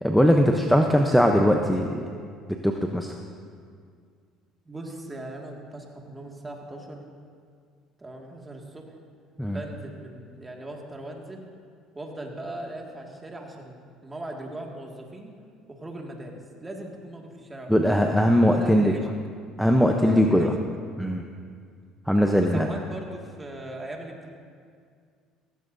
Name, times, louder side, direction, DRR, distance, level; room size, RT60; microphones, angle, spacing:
voice 1, 0.0-2.0 2.6-3.1 9.4-9.6 17.7-18.9 19.6-20.5 21.0-21.2 22.1-22.8, equal, ahead, 3 dB, 0.7 m, -20 dB
voice 2, 4.7-7.0 8.0-9.0 9.5-11.4 11.9-15.3 15.7-17.7 18.4-19.1 19.9-20.5 22.4-24.3, right 1 dB, 15° right, 0 dB, 2.0 m, -39 dB
16.0 x 15.5 x 2.7 m, 2.1 s
supercardioid pair, 100°, 0 cm